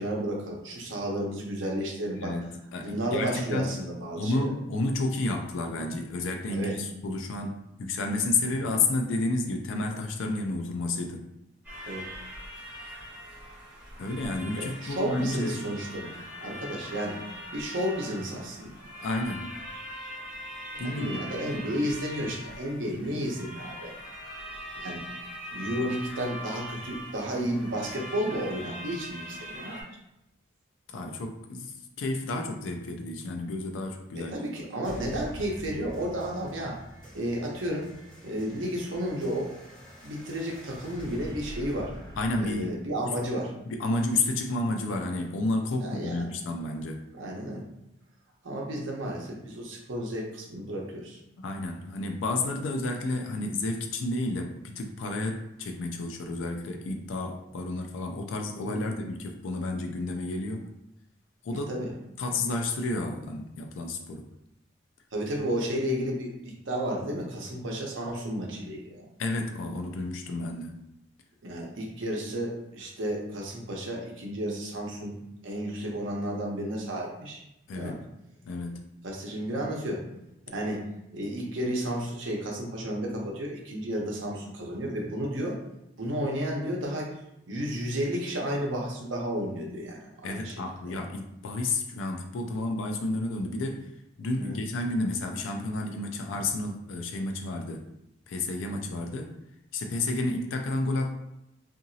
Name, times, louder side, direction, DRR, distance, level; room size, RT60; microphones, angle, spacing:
voice 1, 0.0-2.4 2.8-4.5 5.8-5.9 6.5-6.8 8.5-8.6 11.8-12.1 14.6-17.2 17.5-18.7 20.7-23.9 24.7-25.0 25.5-29.8 34.1-36.8 37.1-37.9 38.2-39.6 40.0-41.9 42.4-43.5 45.8-46.3 47.2-47.6 48.4-51.2 58.6-58.9 61.5-61.9 65.1-69.0 71.4-77.4 77.7-78.0 79.0-80.0 80.5-80.9 81.1-85.6 86.0-87.1 87.5-90.6 90.9-91.0 94.4-94.6 98.7-98.8, equal, 85° right, -1 dB, 0.8 m, -32 dB
voice 2, 2.2-3.7 4.2-11.3 14.0-15.7 19.0-19.5 20.8-21.2 30.9-34.5 42.2-42.7 43.0-43.1 43.7-47.0 51.4-60.7 61.4-61.7 62.2-64.3 69.2-70.8 77.7-77.9 78.5-78.9 90.2-93.9 94.2-97.8 98.3-99.3 99.7-101.2, left 2 dB, 90° left, 3 dB, 0.4 m, -31 dB
sound 1, 11.6-29.8, equal, 5° right, 1.1 m, -42 dB
sound 2, 34.8-43.8, equal, 20° left, 0.9 m, -45 dB
2.8 x 2.5 x 2.6 m, 0.85 s
head